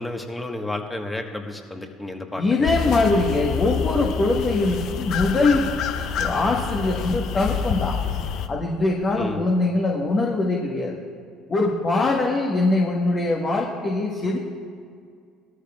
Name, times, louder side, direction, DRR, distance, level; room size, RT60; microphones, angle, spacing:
voice 1, 0.0-3.3 9.2-9.5, left 2 dB, 15° left, 4 dB, 1.4 m, -32 dB
voice 2, 2.3-5.7 6.2-8.0 8.5-11.0 11.5-14.4, left 2 dB, 35° left, -1 dB, 1.4 m, -22 dB
sound 1, 2.6-8.5, left 7 dB, 60° left, 0.6 m, -27 dB
16.5 x 13.0 x 2.4 m, 2.2 s
hypercardioid pair, 65°, 0 cm